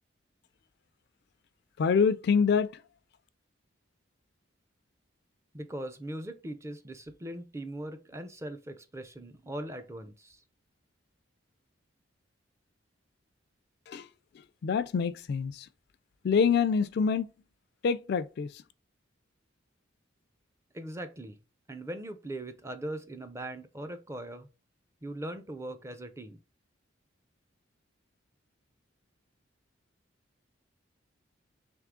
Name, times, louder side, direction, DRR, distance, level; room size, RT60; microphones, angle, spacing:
voice 1, 1.8-2.7 13.9-14.1 14.6-15.7 16.2-17.3 17.8-18.5, left 6 dB, 55° left, 0.3 m, -26 dB
voice 2, 5.5-10.4 20.7-21.4 21.7-24.5 25.0-26.4, right 1 dB, 15° right, 0.4 m, -40 dB
3.6 x 3.1 x 3.5 m
head